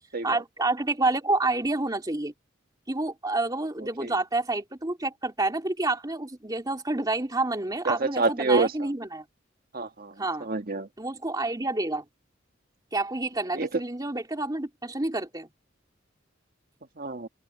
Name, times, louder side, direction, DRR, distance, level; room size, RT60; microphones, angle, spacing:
voice 1, 0.2-2.3 2.9-9.2 10.2-10.5 11.0-12.0 12.9-15.5, right 2 dB, 20° right, 2.7 m, -28 dB
voice 2, 7.9-8.7 9.7-10.1 10.4-10.9 13.5-13.7 17.0-17.3, right 3 dB, 50° right, 1.8 m, -27 dB
open air
head